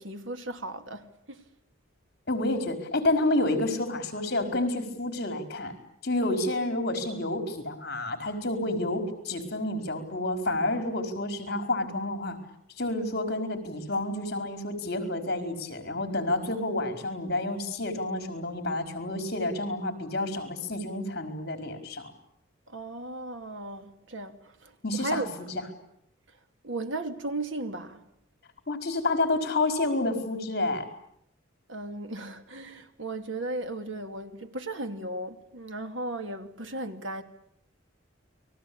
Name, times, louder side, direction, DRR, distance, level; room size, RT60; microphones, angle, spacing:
voice 1, 0.0-1.4 22.7-25.3 26.6-28.0 31.7-37.2, right 2 dB, 70° right, 2.6 m, -36 dB
voice 2, 2.3-5.7 6.0-12.4 12.8-22.1 24.8-25.3 28.7-30.9, left 2 dB, 50° left, 4.7 m, -29 dB
30.0 x 21.5 x 8.7 m
head